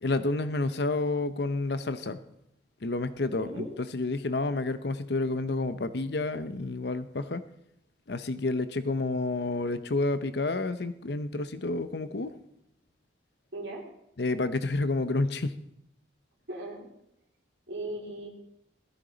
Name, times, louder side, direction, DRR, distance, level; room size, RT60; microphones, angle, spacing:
voice 1, 0.0-2.2 2.8-3.7 3.9-7.4 8.1-12.3 14.2-15.6, left 2 dB, 65° left, 12 dB, 0.7 m, -29 dB
voice 2, 13.5-13.8 16.5-16.9 17.7-18.3, right 1 dB, 75° right, -5 dB, 3.7 m, -37 dB
17.0 x 13.5 x 4.0 m, 0.78 s
head